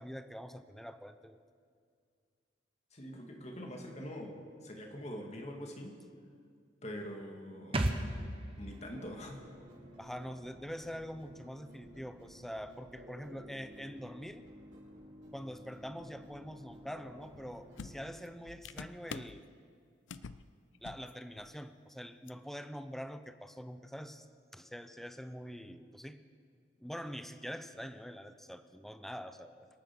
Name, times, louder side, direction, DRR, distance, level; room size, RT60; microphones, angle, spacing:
voice 1, 0.0-1.4 10.0-14.5 15.3-19.4 20.8-24.3 24.5-26.2 26.8-29.7, equal, ahead, 10 dB, 0.6 m, -45 dB
voice 2, 2.9-4.3 4.6-6.0 6.8-8.1 8.6-9.4, equal, 35° left, 2 dB, 2.2 m, -44 dB
sound 1, 7.7-11.3 11.5-11.6, right 1 dB, 30° right, 1.2 m, -38 dB
sound 2, 8.6-18.1, equal, 80° right, 5.5 m, -54 dB
sound 3, 17.3-17.4 17.8-19.4 20.1-20.4 20.7-21.1 21.4-21.5 22.3-22.4, left 5 dB, 85° left, 0.5 m, -46 dB
26.0 x 9.1 x 6.1 m, 2.2 s
head